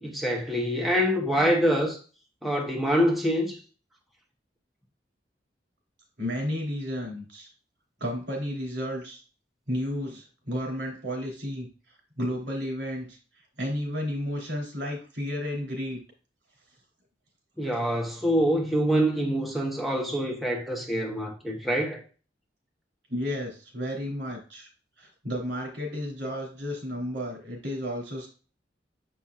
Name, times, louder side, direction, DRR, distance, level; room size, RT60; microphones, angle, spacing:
voice 1, 0.0-2.0 2.4-3.6 17.6-22.0, equal, ahead, 0.8 m, -25 dB
voice 2, 6.2-7.5 8.0-9.2 9.7-11.7 12.2-13.2 13.6-16.0 23.1-24.7 25.0-28.3, equal, 75° right, 3.3 m, -32 dB
7.0 x 5.7 x 2.4 m
head